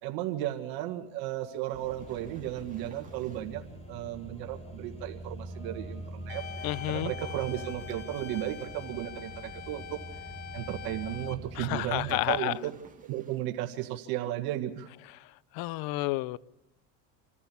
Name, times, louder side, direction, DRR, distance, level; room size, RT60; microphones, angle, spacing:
voice 1, 0.0-3.6 3.9-10.0 10.5-12.7 13.0-14.9, right 13 dB, 70° right, 1.9 m, -35 dB
sound 1, 1.4-3.7 6.2-8.9 11.7-13.6, right 5 dB, 20° right, 2.6 m, -56 dB
sound 2, 1.7-12.4, right 1 dB, 15° left, 3.5 m, -44 dB
sound 3, 6.3-11.3, left 9 dB, 45° left, 1.6 m, -43 dB
voice 2, 6.6-7.1 11.6-12.5 15.5-16.4, left 17 dB, 65° left, 0.7 m, -30 dB
26.5 x 14.5 x 7.1 m
supercardioid pair, 110°, 38 cm